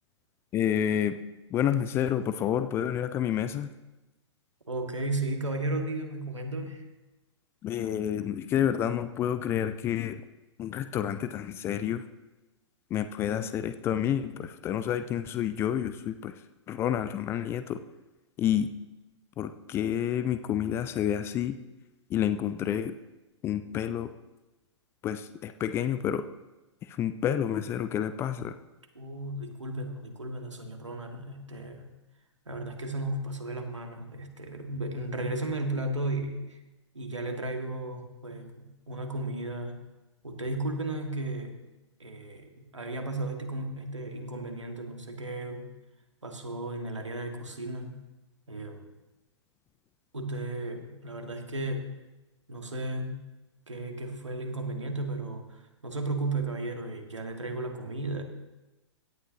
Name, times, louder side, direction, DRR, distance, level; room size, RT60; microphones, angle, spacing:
voice 1, 0.5-1.2 1.5-3.7 7.6-10.2 10.6-12.0 12.9-16.3 16.7-17.8 18.4-18.7 19.4-21.6 22.1-23.0 23.4-24.1 25.0-26.2 26.8-28.5, left 10 dB, 15° left, 11 dB, 0.4 m, -29 dB
voice 2, 4.7-6.8 29.0-31.9 32.5-36.6 36.9-39.8 40.2-41.6 42.0-45.7 46.2-48.0 48.5-48.9 50.1-51.9 52.5-53.2 53.7-58.2, right 2 dB, 75° right, 3 dB, 1.9 m, -34 dB
17.0 x 11.5 x 2.9 m, 1.0 s
figure-of-eight pair, 110°, 15 cm